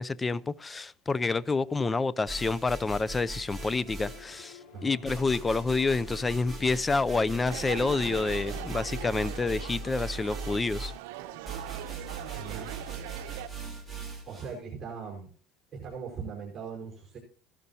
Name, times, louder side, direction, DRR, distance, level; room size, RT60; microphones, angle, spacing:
voice 1, 0.0-10.9, left 3 dB, 15° left, 0.5 m, -28 dB
sound 1, 2.3-4.6 5.1-14.6, right 3 dB, ahead, 3.5 m, -40 dB
sound 2, 3.4-9.2, left 8 dB, 85° left, 5.7 m, -51 dB
voice 2, 4.7-5.0 12.4-12.7 14.3-15.3 15.7-17.2, right 6 dB, 25° right, 5.0 m, -40 dB
sound 3, 7.5-13.5, right 16 dB, 85° right, 0.7 m, -41 dB
16.5 x 12.0 x 2.8 m
cardioid pair, 130°, 0 cm